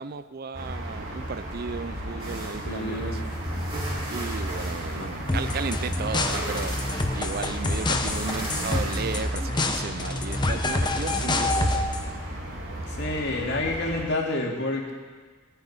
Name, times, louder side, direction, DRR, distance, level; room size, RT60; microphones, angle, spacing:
voice 1, 0.0-3.2 4.1-6.8 7.1-11.9, right 4 dB, 50° right, 13 dB, 0.5 m, -34 dB
sound 1, 0.5-14.0, right 1 dB, 70° right, 2.8 m, -34 dB
sound 2, 2.2-9.2, right 1 dB, 25° right, 3.7 m, -38 dB
voice 2, 2.7-3.2 5.0-5.1 13.0-14.9, left 2 dB, 60° left, 0 dB, 2.4 m, -28 dB
sound 3, 5.3-12.1, left 2 dB, 20° left, 0.8 m, -27 dB
19.0 x 9.2 x 5.5 m, 1.4 s
head